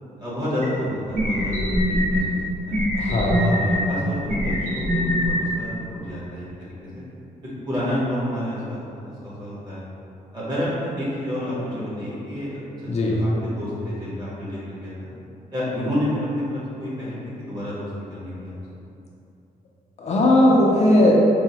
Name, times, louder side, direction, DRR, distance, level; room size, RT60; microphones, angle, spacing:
voice 1, 0.2-2.4 2.6-2.8 3.3-7.0 7.4-9.8 10.3-15.1 15.5-18.5, left 1 dB, 30° right, -9 dB, 1.1 m, -30 dB
sound 1, 0.6-0.7 1.1-2.2 2.7-3.8 4.3-5.3, equal, 65° right, 1.0 m, -22 dB
voice 2, 3.0-3.4 12.9-13.1 20.0-21.1, left 1 dB, 50° left, -3 dB, 0.4 m, -17 dB
4.5 x 2.0 x 2.8 m, 2.8 s
wide cardioid pair, 155°, 15 cm